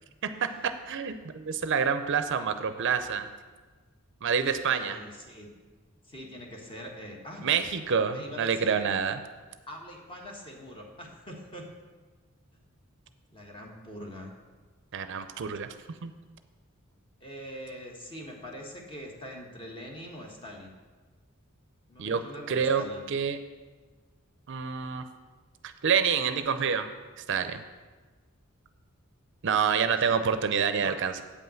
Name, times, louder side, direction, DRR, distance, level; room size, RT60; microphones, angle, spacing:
voice 1, 0.4-3.3 4.2-5.0 7.4-9.2 14.9-15.7 16.0-16.1 22.0-22.2 22.5-22.8 23.1-23.4 24.5-25.0 25.8-26.9 27.2-27.6 29.4-31.2, right 6 dB, 60° right, 10 dB, 0.5 m, -27 dB
voice 2, 4.6-5.5 6.0-7.5 8.1-8.9 9.7-11.7 13.3-14.3 17.2-20.7 21.9-23.0 29.8-30.2 30.8-31.0, equal, 25° left, 0 dB, 1.4 m, -43 dB
8.3 x 5.6 x 7.6 m, 1.3 s
head